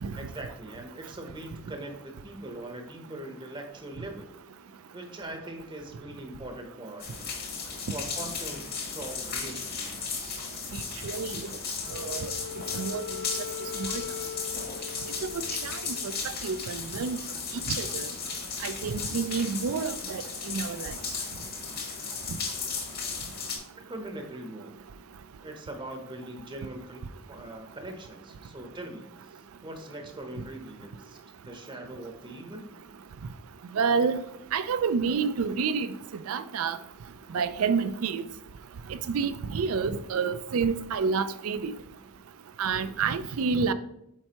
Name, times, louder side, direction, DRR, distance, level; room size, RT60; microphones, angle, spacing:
voice 1, 0.2-4.3 4.9-7.1 7.9-9.9 11.0-11.1 22.0-22.1 23.9-24.8 25.4-27.0 27.3-32.7, right 1 dB, 25° right, 0.8 m, -41 dB
sound 1, 7.0-23.6, left 5 dB, 45° left, 1.3 m, -35 dB
voice 2, 11.0-11.5 11.9-12.3 12.8-13.0 13.8-14.0 15.2-15.3 15.6-16.0 16.4-17.2 17.8-18.1 18.6-20.9 33.7-34.2 34.5-35.9 36.3-36.8 37.3-38.2 38.9-41.7 42.6-43.7, right 5 dB, 75° right, 0.4 m, -28 dB
Wind instrument woodwind instrument, 11.8-16.3, left 10 dB, 65° left, 0.9 m, -40 dB
7.5 x 4.5 x 2.9 m
head